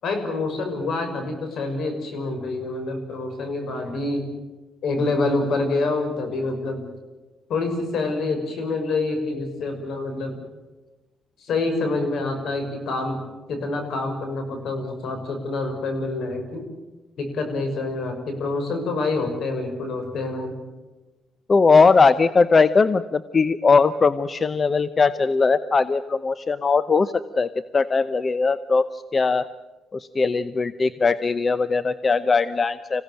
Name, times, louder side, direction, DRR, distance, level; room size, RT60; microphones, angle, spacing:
voice 1, 0.0-4.3 4.8-6.8 7.5-10.3 11.5-13.2 13.5-16.6 17.2-20.5, left 3 dB, 70° left, 6 dB, 6.0 m, -26 dB
voice 2, 21.5-29.5 29.9-33.0, left 4 dB, 35° left, 14 dB, 0.8 m, -20 dB
26.0 x 17.0 x 9.1 m, 1.1 s
cardioid pair, 90°, 0 cm